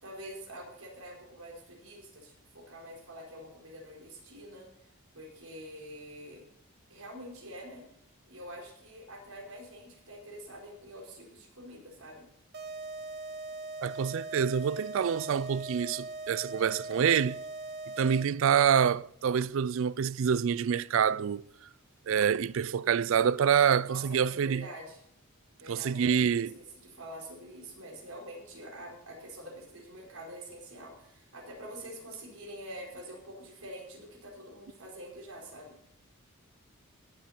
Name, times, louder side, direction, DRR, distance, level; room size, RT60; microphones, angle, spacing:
voice 1, 0.0-4.7 5.1-6.4 6.9-7.8 8.3-12.2 23.8-25.0 25.6-35.7, right 1 dB, 75° right, 4.6 m, -46 dB
sound 1, 12.5-18.5, right 2 dB, 45° right, 1.2 m, -40 dB
voice 2, 13.8-17.4 18.0-21.4 22.1-24.7 25.7-26.5, right 7 dB, 60° right, 0.3 m, -26 dB
17.5 x 7.6 x 4.4 m
head